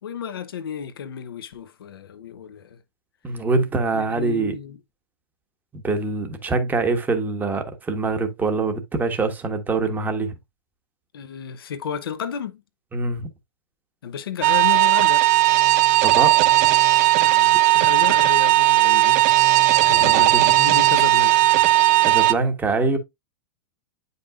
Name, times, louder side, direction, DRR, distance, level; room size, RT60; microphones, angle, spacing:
voice 1, 0.0-2.8 3.9-4.8 11.1-12.6 14.0-15.3 17.2-19.2 19.7-21.5, left 7 dB, 85° left, 1.0 m, -32 dB
voice 2, 3.2-4.6 5.7-10.3 12.9-13.3 16.0-16.4 19.8-20.4 22.0-23.0, right 3 dB, 15° right, 1.3 m, -24 dB
sound 1, 14.4-22.3, right 17 dB, 50° right, 0.5 m, -16 dB
8.5 x 5.4 x 2.5 m
hypercardioid pair, 125°, 12 cm